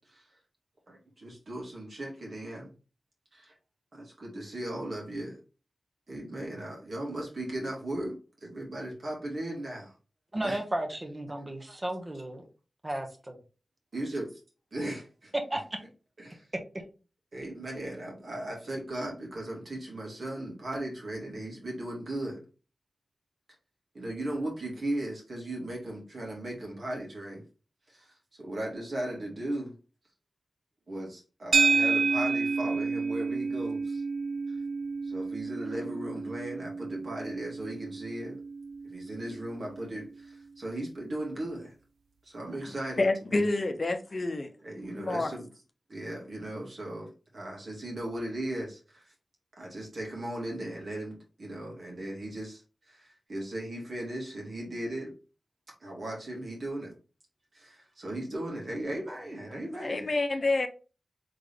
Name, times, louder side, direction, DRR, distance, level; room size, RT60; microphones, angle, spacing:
voice 1, 0.9-2.7 3.3-3.5 3.9-5.4 6.1-8.2 8.4-9.9 10.4-10.6 11.7-11.8 13.9-14.3 14.7-15.3 16.2-16.4 17.3-22.4 23.9-27.4 28.4-29.7 30.9-34.0 35.1-38.4 38.8-40.1 40.6-41.7 42.3-43.4 44.6-45.5 45.9-48.8 49.6-52.6 52.9-53.0 53.3-55.1 55.8-56.9 57.5-60.0, right 1 dB, 70° right, 2.3 m, -37 dB
voice 2, 10.3-12.4 12.8-13.3 15.5-15.6, right 1 dB, 30° right, 1.2 m, -34 dB
sound 1, 31.5-40.0, right 4 dB, 85° right, 0.3 m, -30 dB
voice 3, 43.0-44.5 45.0-45.3 59.8-60.7, left 2 dB, 50° left, 0.7 m, -28 dB
3.8 x 3.8 x 3.5 m
cardioid pair, 50°, 0 cm